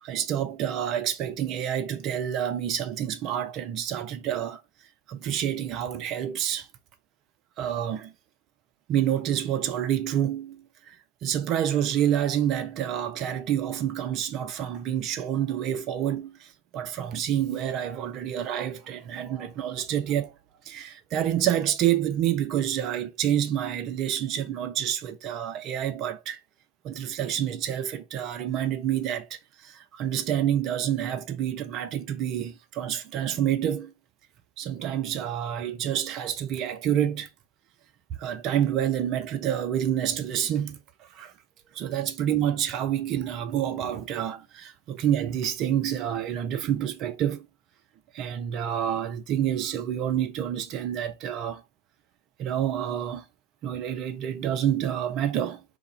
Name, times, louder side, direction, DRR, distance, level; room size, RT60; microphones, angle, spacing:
voice 1, 0.0-4.6 5.1-6.7 7.6-8.1 8.9-11.0 11.2-20.3 20.7-26.4 26.8-33.9 34.6-37.3 38.2-41.3 41.7-47.5 48.1-51.6 52.4-53.3 53.6-55.6, right 10 dB, 35° right, 0.4 m, -28 dB
2.3 x 2.0 x 3.3 m
figure-of-eight pair, 90°, 0 cm